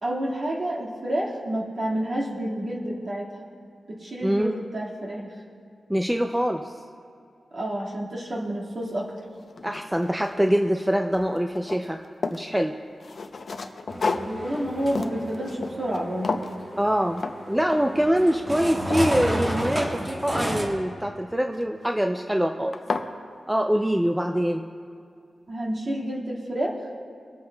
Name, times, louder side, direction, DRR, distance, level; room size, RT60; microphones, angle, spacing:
voice 1, 0.0-3.4 3.9-5.3 7.5-9.1 14.0-16.3 25.5-26.7, right 1 dB, 45° right, -4 dB, 1.9 m, -29 dB
voice 2, 4.2-4.6 5.9-6.8 9.6-12.0 12.3-12.8 16.8-22.8 23.5-24.7, equal, 5° right, 3 dB, 0.4 m, -24 dB
sound 1, 8.8-8.9 9.4-10.8 11.1-12.5 13.0-16.0 16.2-16.6 17.2-17.4 17.7-18.1 18.5-20.1 21.5-21.9 22.4-22.5 22.7-23.1, left 4 dB, 55° left, 0.5 m, -32 dB
sound 2, 13.9-20.7, equal, 25° right, 1.3 m, -32 dB
25.0 x 8.5 x 2.3 m, 2.4 s
wide cardioid pair, 130°, 0 cm